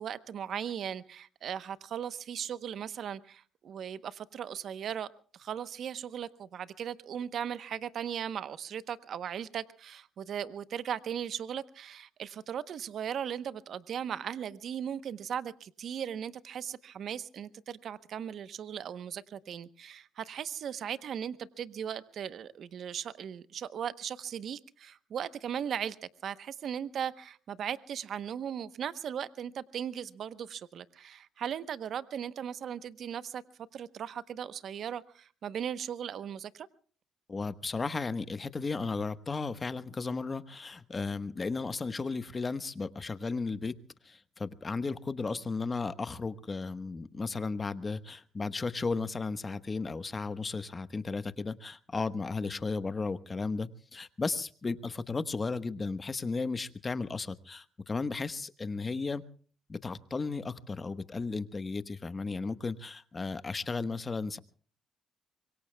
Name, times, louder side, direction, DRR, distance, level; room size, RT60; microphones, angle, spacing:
voice 1, 0.0-5.1 5.3-26.0 26.2-33.4 33.7-36.7, right 8 dB, 65° right, 14 dB, 0.8 m, -38 dB
voice 2, 37.3-43.7 44.0-59.2 59.7-64.4, left 4 dB, 30° left, 13 dB, 1.1 m, -34 dB
25.5 x 23.5 x 2.2 m, 0.43 s
cardioid pair, 90°, 0 cm